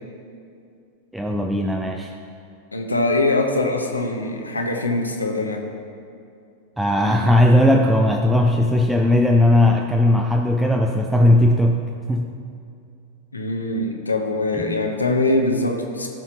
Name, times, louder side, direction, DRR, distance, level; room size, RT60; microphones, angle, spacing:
voice 1, 1.1-2.1 6.8-12.3 14.5-14.8, left 1 dB, 5° right, 2 dB, 0.5 m, -18 dB
voice 2, 2.7-5.6 13.3-16.1, left 2 dB, 80° left, 3 dB, 0.9 m, -22 dB
14.0 x 5.9 x 4.0 m, 2.5 s
figure-of-eight pair, 90°, 0 cm